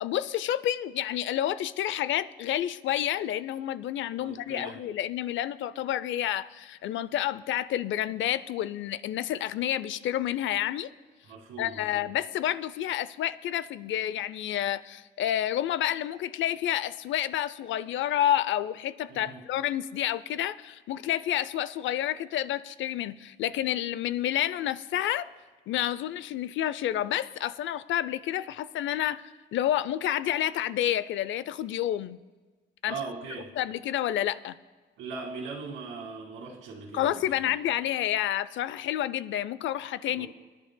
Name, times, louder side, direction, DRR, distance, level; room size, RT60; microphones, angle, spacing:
voice 1, 0.0-10.9 11.6-25.3 25.7-32.2 32.8-32.9 33.6-34.6 36.9-40.3, left 12 dB, 75° left, 17 dB, 0.5 m, -29 dB
voice 2, 4.2-4.8 11.2-12.1 19.1-19.4 32.9-33.5 35.0-37.5 40.1-40.3, right 4 dB, 90° right, -4 dB, 2.0 m, -40 dB
23.5 x 10.5 x 2.2 m, 1.3 s
cardioid pair, 90°, 20 cm